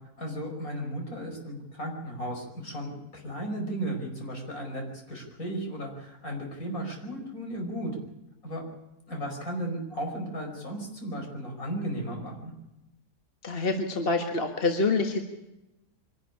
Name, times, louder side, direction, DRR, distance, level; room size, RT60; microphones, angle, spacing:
voice 1, 0.2-7.9 8.4-8.6 9.1-12.5, right 1 dB, 65° left, 1 dB, 5.7 m, -35 dB
voice 2, 13.4-15.2, left 3 dB, 40° left, 4 dB, 1.7 m, -26 dB
24.0 x 11.5 x 9.9 m, 0.96 s
omnidirectional pair, 1.6 m